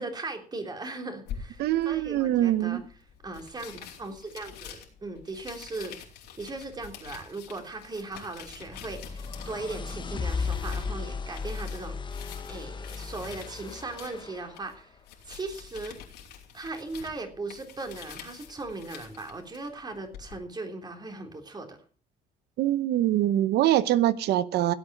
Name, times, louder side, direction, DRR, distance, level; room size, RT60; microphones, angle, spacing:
voice 1, 0.0-2.8 3.2-6.0 6.4-12.0 12.5-15.0 15.3-16.0 16.5-21.8, right 3 dB, 25° right, 5 dB, 3.3 m, -38 dB
sound 1, 1.3-20.4, left 8 dB, 85° left, 4.3 m, -47 dB
voice 2, 1.6-2.8 22.6-24.7, right 13 dB, 75° right, 15 dB, 0.9 m, -24 dB
sound 2, 8.5-14.6, left 5 dB, 25° left, 1.2 m, -35 dB
16.5 x 8.6 x 6.1 m, 0.43 s
cardioid pair, 110°, 17 cm